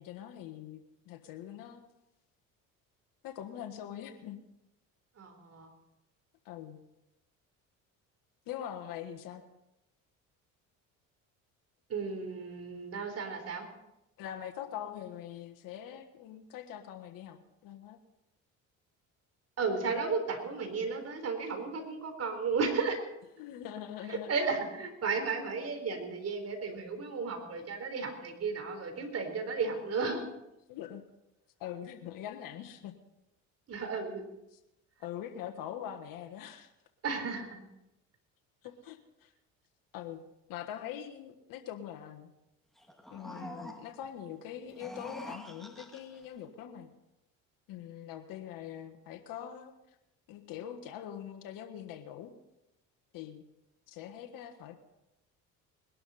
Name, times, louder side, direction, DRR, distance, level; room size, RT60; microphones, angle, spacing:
voice 1, 0.0-1.9 3.2-4.4 6.4-6.8 8.5-9.4 14.2-18.0 23.4-24.3 30.7-31.0 31.6-32.9 35.0-36.7 38.6-39.3 39.9-40.2 40.5-42.3 43.1-46.9 47.7-49.7 50.3-52.3 53.1-53.4 53.9-54.7, left 10 dB, 70° left, 4 dB, 1.5 m, -43 dB
voice 2, 5.2-5.7 11.9-13.6 19.6-23.0 24.1-30.2 33.7-34.3 37.0-37.6, right 4 dB, 45° right, 5 dB, 4.0 m, -34 dB
sound 1, 42.8-44.1 44.6-46.3, equal, ahead, 2.1 m, -46 dB
21.0 x 12.0 x 4.2 m, 0.89 s
supercardioid pair, 85°, 35 cm